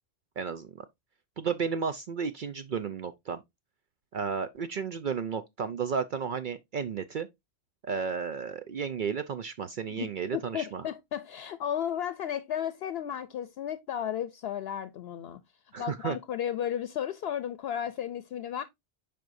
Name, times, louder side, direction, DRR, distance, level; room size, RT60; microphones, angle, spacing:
voice 1, 0.4-0.9 1.4-3.4 4.1-7.3 7.8-10.8 15.7-16.2, right 6 dB, 55° right, 0.7 m, -33 dB
voice 2, 10.3-15.4 15.8-18.6, left 9 dB, 70° left, 0.8 m, -34 dB
7.7 x 5.2 x 2.5 m
omnidirectional pair, 1.1 m